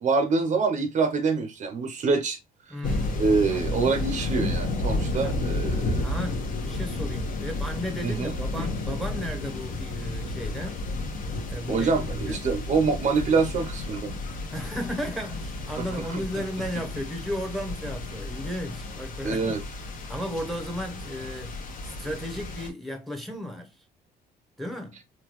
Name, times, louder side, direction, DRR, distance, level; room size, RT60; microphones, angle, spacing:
voice 1, 0.0-2.4 3.2-6.0 8.0-8.3 11.7-14.1 15.8-16.2 19.2-19.6, right 4 dB, 45° right, 0.6 m, -25 dB
voice 2, 2.7-3.2 3.5-3.8 5.2-5.4 6.0-10.8 11.5-12.4 14.5-19.5 20.1-21.6 21.8-23.7 24.6-25.0, equal, ahead, 0.8 m, -34 dB
sound 1, 2.8-22.7, left 2 dB, 55° left, 0.9 m, -32 dB
3.7 x 2.2 x 2.9 m
cardioid pair, 110°, 17 cm